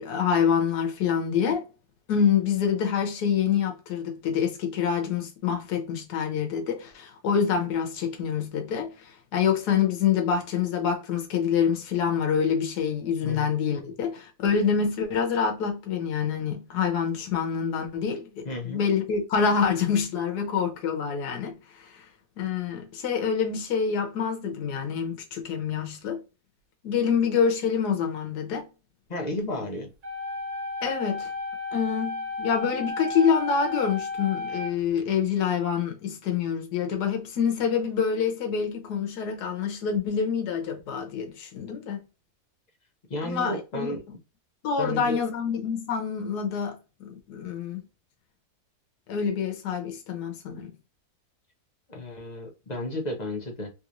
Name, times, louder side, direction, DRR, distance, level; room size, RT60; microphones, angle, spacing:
voice 1, 0.0-1.6 2.1-22.0 22.4-26.2 26.8-28.6 30.8-31.3 31.7-42.0 43.2-44.0 44.6-47.8 49.1-50.7, left 7 dB, 85° left, 1.4 m, -26 dB
voice 2, 18.4-18.8 29.1-29.9 43.1-44.0 44.8-45.2 51.9-53.7, left 1 dB, 40° left, 0.6 m, -32 dB
sound 1, 30.0-35.0, left 3 dB, 55° right, 0.4 m, -33 dB
3.4 x 2.9 x 2.5 m
omnidirectional pair, 1.7 m